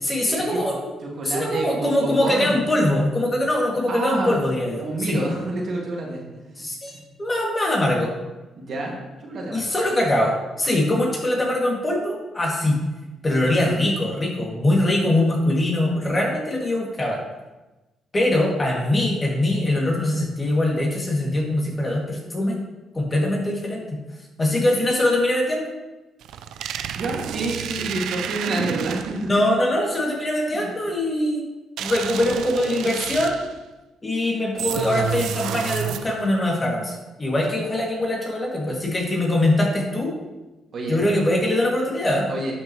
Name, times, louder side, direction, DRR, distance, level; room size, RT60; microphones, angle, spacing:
voice 1, 0.0-0.9 1.2-5.2 6.6-8.1 9.5-12.8 13.2-17.2 18.1-22.5 22.9-24.0 24.4-25.7 29.3-31.5 31.8-33.4 34.0-40.1 40.9-42.3, left 1 dB, 25° left, -2 dB, 2.4 m, -22 dB
voice 2, 1.0-2.7 3.9-6.6 8.5-8.9 9.2-9.7 27.0-29.3 30.5-30.7 40.7-41.0 42.3-42.5, right 2 dB, 55° right, -2 dB, 2.1 m, -28 dB
sound 1, 26.2-29.3 31.8-33.6 34.6-36.3, right 9 dB, 80° right, 0.4 m, -30 dB
11.5 x 5.9 x 3.1 m, 1.1 s
cardioid pair, 90°, 0 cm